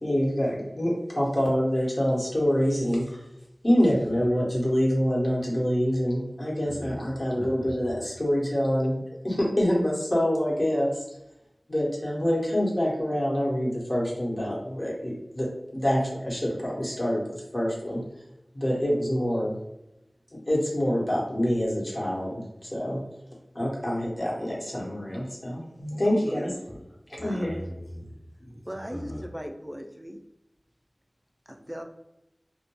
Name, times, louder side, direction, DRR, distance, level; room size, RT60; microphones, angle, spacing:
voice 1, 0.0-3.2 3.6-11.0 11.7-17.2 17.5-18.0 18.5-19.5 20.3-23.0 23.5-26.5 27.1-27.5, equal, 50° left, -4 dB, 0.9 m, -26 dB
voice 2, 6.6-6.9 7.4-7.9 26.7-26.8 27.1-28.6 28.9-29.2, equal, 85° left, -6 dB, 0.9 m, -40 dB
voice 3, 26.0-26.6 27.2-27.5 28.7-30.2 31.5-31.8, equal, 10° right, 4 dB, 0.3 m, -38 dB
2.2 x 2.1 x 2.9 m, 0.88 s
wide cardioid pair, 45°, 0 cm